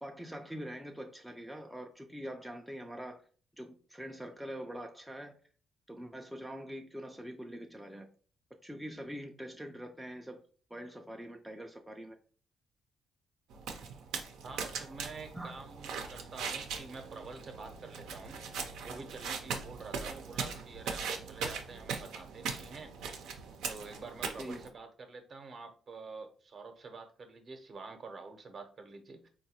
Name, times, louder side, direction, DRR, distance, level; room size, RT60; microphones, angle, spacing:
voice 1, 0.0-3.2 3.6-5.4 5.9-8.1 8.6-10.4 10.7-12.2 15.3-15.5 24.4-24.6, equal, 5° right, 0.4 m, -44 dB
sound 1, 13.5-24.7, right 5 dB, 85° right, 0.5 m, -40 dB
voice 2, 14.4-18.4 18.8-22.9 23.7-29.3, right 4 dB, 45° right, 0.7 m, -47 dB
3.8 x 2.3 x 2.8 m
cardioid pair, 90°, 0 cm